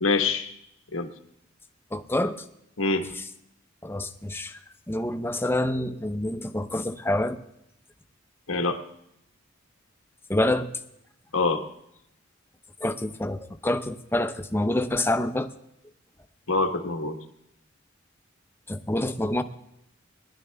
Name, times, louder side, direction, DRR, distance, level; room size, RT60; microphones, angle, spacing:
voice 1, 0.0-0.5 0.9-1.1 2.8-3.1 8.5-8.8 11.3-11.6 16.5-17.2, left 3 dB, 90° left, 5 dB, 1.4 m, -25 dB
voice 2, 1.9-2.4 3.8-4.6 4.9-7.4 10.3-10.7 12.8-15.5 18.7-19.4, left 1 dB, 10° left, 9 dB, 0.7 m, -27 dB
20.0 x 11.5 x 3.5 m, 0.77 s
head